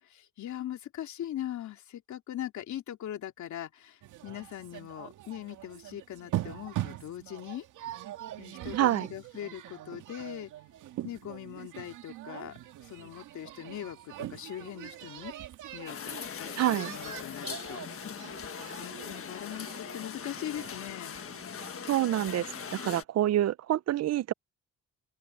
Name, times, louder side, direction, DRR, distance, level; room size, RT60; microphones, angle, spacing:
voice 1, 0.0-7.6 8.4-10.5 11.0-15.3 15.7-17.8 18.8-21.2, left 11 dB, 70° left, 2.8 m, -41 dB
sound 1, 4.0-23.0, right 13 dB, 80° right, 2.2 m, -42 dB
voice 2, 8.7-9.1 16.6-16.9 21.9-22.5 22.7-24.3, right 13 dB, 55° right, 0.6 m, -27 dB
sound 2, 15.9-23.0, left 7 dB, 45° left, 1.5 m, -40 dB
open air
cardioid pair, 90°, 30 cm